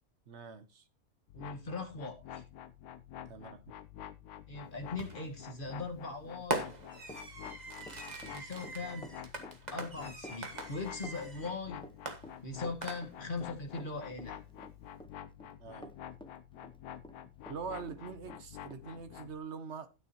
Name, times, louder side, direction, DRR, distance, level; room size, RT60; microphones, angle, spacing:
voice 1, 0.3-0.9 3.3-3.6 15.6-15.9 17.5-19.9, right 5 dB, 50° right, 1.3 m, -44 dB
sound 1, 1.3-19.4, left 10 dB, 90° left, 1.2 m, -49 dB
voice 2, 1.3-2.4 4.5-6.7 8.3-9.1 9.7-11.9 12.4-14.5, left 3 dB, 35° left, 1.8 m, -40 dB
Fireworks, 5.0-5.4 6.5-11.5 12.1-13.4, right 2 dB, 30° right, 1.4 m, -41 dB
Run, 6.4-17.6 17.9-18.8, left 1 dB, 5° left, 0.4 m, -51 dB
12.5 x 9.5 x 3.0 m
omnidirectional pair, 1.6 m